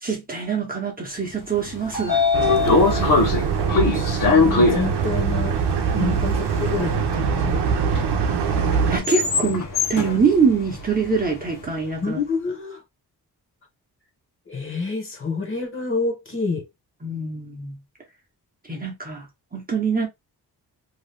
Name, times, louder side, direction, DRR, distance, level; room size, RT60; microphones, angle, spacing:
voice 1, 0.0-2.3 2.8-3.3 5.9-6.2 8.9-12.2 17.0-17.8 18.7-20.1, right 5 dB, 20° right, 0.7 m, -24 dB
Train / Sliding door, 1.5-11.7, left 4 dB, 55° left, 1.0 m, -23 dB
sound 1, 2.3-9.0, right 6 dB, 90° right, 0.7 m, -23 dB
voice 2, 3.6-5.6 6.0-6.3 6.7-7.6 12.0-12.8 14.5-16.6, left 4 dB, 30° left, 1.0 m, -28 dB
2.8 x 2.4 x 3.2 m
wide cardioid pair, 170°, 40 cm